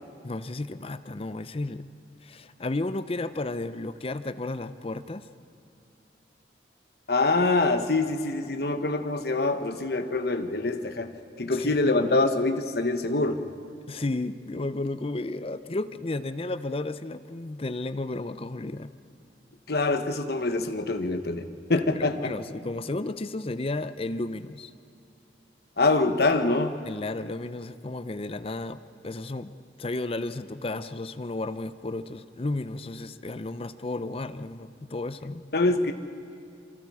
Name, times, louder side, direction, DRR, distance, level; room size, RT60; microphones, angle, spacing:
voice 1, 0.2-1.9 2.2-5.3 11.5-12.3 13.9-18.9 21.9-24.7 26.8-29.5 29.8-35.4, left 2 dB, 30° left, 12 dB, 0.6 m, -33 dB
voice 2, 7.1-11.1 11.4-13.4 19.7-21.4 21.7-22.3 25.8-26.8 35.5-35.9, left 2 dB, 60° left, 8 dB, 1.2 m, -25 dB
27.5 x 24.5 x 4.9 m, 2.5 s
head